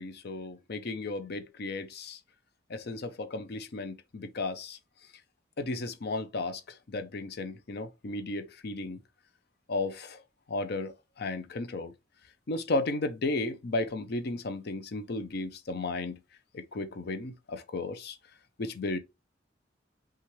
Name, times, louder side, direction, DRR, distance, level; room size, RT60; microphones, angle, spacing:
voice 1, 0.0-2.2 2.7-4.8 5.6-6.6 6.9-9.0 9.7-10.2 10.5-11.9 12.5-16.2 16.5-18.2 18.6-19.0, left 2 dB, 60° left, 0.6 m, -34 dB
5.7 x 2.5 x 3.1 m
head